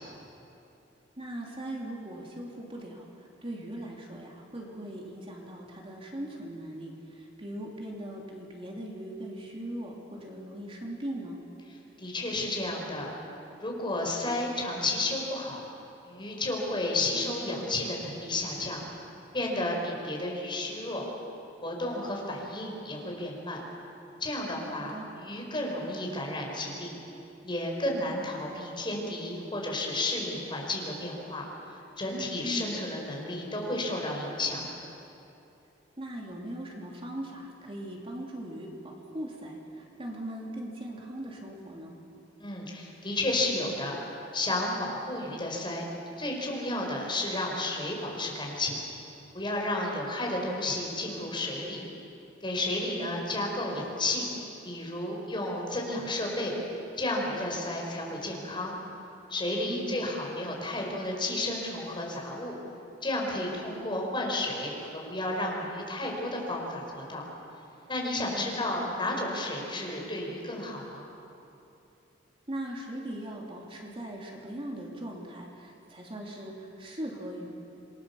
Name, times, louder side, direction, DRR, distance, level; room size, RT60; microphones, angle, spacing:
voice 1, 1.2-11.4 24.8-25.1 32.4-32.8 36.0-42.0 53.0-53.2 59.7-60.1 68.3-68.9 72.5-77.5, right 1 dB, 30° right, -1 dB, 3.1 m, -39 dB
voice 2, 12.0-13.1 13.6-15.6 16.1-18.8 19.3-21.0 21.6-23.6 24.2-27.0 27.4-31.4 32.0-34.7 42.4-45.8 46.2-48.8 49.3-51.8 52.4-54.2 54.6-56.5 57.0-58.8 59.3-62.6 63.0-67.2 67.9-71.1, left 2 dB, 25° left, -1 dB, 5.3 m, -32 dB
27.5 x 22.5 x 7.2 m, 2.9 s
head